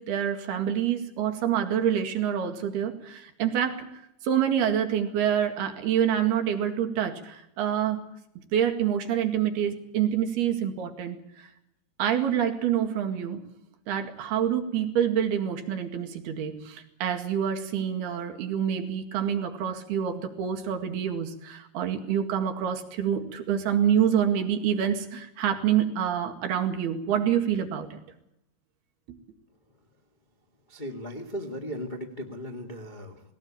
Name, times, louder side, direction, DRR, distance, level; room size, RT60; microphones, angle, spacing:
voice 1, 0.0-3.9 4.2-8.0 8.5-11.5 12.0-13.4 13.9-28.0 29.1-29.2, right 9 dB, 80° right, 6 dB, 4.0 m, -27 dB
voice 2, 30.7-33.3, equal, 35° left, 3 dB, 0.7 m, -37 dB
19.5 x 18.5 x 8.7 m, 0.81 s
omnidirectional pair, 4.5 m